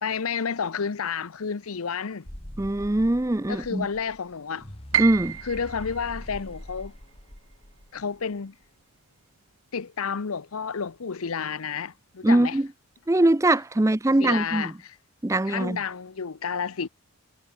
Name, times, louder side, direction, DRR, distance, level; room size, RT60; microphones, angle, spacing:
voice 1, 0.0-2.3 3.5-4.7 5.4-6.9 7.9-8.5 9.7-12.6 14.2-14.9 15.5-16.9, left 6 dB, 80° left, 0.7 m, -30 dB
sound 1, 2.2-8.3, equal, 25° left, 2.4 m, -43 dB
voice 2, 2.6-3.9 5.0-5.4 12.2-12.7 13.1-14.7 15.2-15.8, right 1 dB, 15° right, 0.5 m, -22 dB
Piano, 4.9-10.9 11.2-12.3 12.8-12.9 13.6-13.9, right 10 dB, 70° right, 0.8 m, -34 dB
head